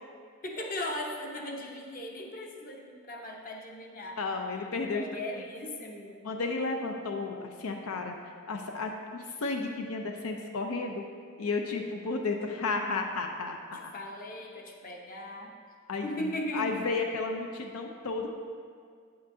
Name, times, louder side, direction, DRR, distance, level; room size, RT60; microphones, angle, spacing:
voice 1, 0.4-4.2 4.9-6.2 13.7-15.5 16.0-16.9, left 1 dB, 40° left, 1 dB, 0.8 m, -38 dB
voice 2, 4.2-5.1 6.2-8.1 8.5-11.0 11.4-13.9 15.9-16.1 16.5-18.3, left 3 dB, 80° left, 3 dB, 0.5 m, -33 dB
8.8 x 7.8 x 2.7 m, 2.1 s
head